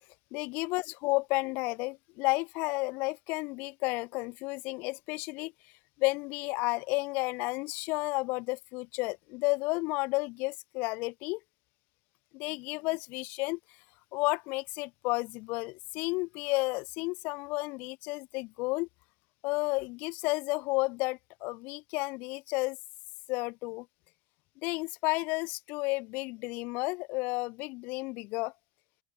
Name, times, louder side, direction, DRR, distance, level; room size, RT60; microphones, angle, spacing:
voice 1, 0.3-5.5 6.0-11.4 12.3-13.6 14.1-18.9 19.4-22.8 23.3-23.9 24.6-28.5, left 25 dB, 55° left, 5.8 m, -32 dB
open air
supercardioid pair, 140°, 4 cm